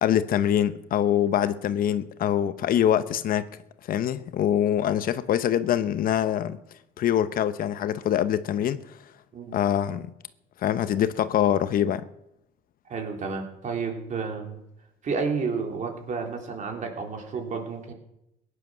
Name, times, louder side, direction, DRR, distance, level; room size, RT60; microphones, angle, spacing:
voice 1, 0.0-3.6 3.9-6.6 7.0-8.8 9.5-10.1 10.6-12.1, left 10 dB, 60° left, 0.8 m, -24 dB
voice 2, 12.9-14.6 15.0-17.9, right 5 dB, 45° right, 3.3 m, -31 dB
16.5 x 10.0 x 6.2 m
cardioid pair, 110°, 17 cm